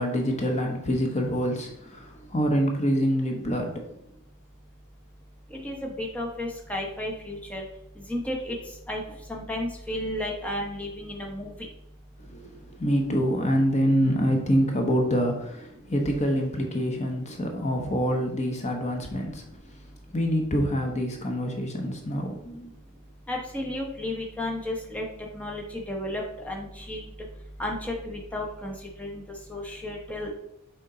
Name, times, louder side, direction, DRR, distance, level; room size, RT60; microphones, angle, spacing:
voice 1, 0.0-3.9 12.2-22.7, equal, 30° left, 2 dB, 0.9 m, -26 dB
voice 2, 5.5-7.6 8.1-8.6 8.9-9.0 9.3-11.5 23.3-25.1 25.3-27.0 27.6-28.7 29.0-29.2 29.5-30.3, left 1 dB, 5° left, -1 dB, 0.9 m, -33 dB
6.7 x 4.4 x 3.8 m, 0.79 s
head